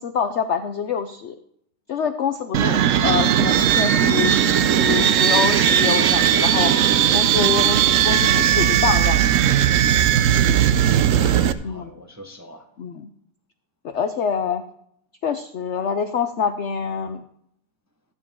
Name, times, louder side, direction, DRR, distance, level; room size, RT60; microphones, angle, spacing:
voice 1, 0.0-1.3 1.9-6.7 7.1-9.3 11.6-11.9 12.8-13.1 13.8-14.6 15.2-17.2, left 7 dB, 80° left, 8 dB, 0.6 m, -26 dB
sound 1, 2.5-11.5, right 10 dB, 75° right, 0.7 m, -18 dB
voice 2, 10.1-12.6, equal, 15° right, 3 dB, 0.7 m, -37 dB
14.5 x 9.2 x 3.6 m, 0.71 s
omnidirectional pair, 2.0 m